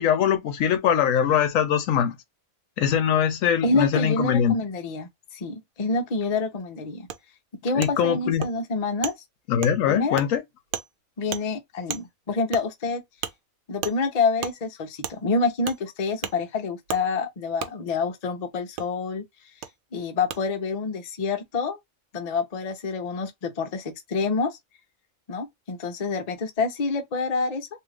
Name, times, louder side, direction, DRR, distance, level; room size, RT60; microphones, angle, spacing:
voice 1, 0.0-2.2 2.8-4.5 7.7-8.5 9.5-10.4, left 9 dB, 75° left, 0.9 m, -22 dB
voice 2, 3.6-7.1 7.6-9.1 9.9-10.3 11.2-13.0 13.7-19.2 19.9-21.8 22.1-24.6 25.3-27.7, left 4 dB, 40° left, 0.6 m, -27 dB
Wood, 7.1-7.2 7.8-7.9 8.4-8.5 9.0-9.1 9.6-9.7 10.2-10.3 10.7-10.9 11.3-11.4 11.9-12.0 12.5-12.6 13.2-13.3 13.8-14.0 14.4-14.5 15.0-15.2 15.7-15.8 16.2-16.3 16.9-17.0 17.6-17.7 18.8-18.9 19.6-19.7 20.3-20.4, right 9 dB, 85° right, 1.0 m, -32 dB
2.7 x 2.4 x 3.1 m
omnidirectional pair, 1.4 m